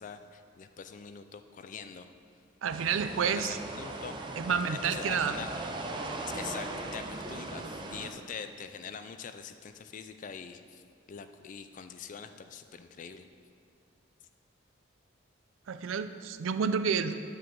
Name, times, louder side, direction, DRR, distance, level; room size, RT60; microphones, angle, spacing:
voice 1, 0.0-2.1 3.2-5.5 6.3-10.8 11.1-13.3, left 6 dB, 40° left, 9 dB, 0.3 m, -44 dB
voice 2, 2.6-3.6 4.4-5.3 15.7-17.1, right 6 dB, 80° right, 11 dB, 0.4 m, -29 dB
sound 1, 2.7-8.1, right 2 dB, 25° right, 0.5 m, -39 dB
9.4 x 6.0 x 3.7 m, 2.3 s
head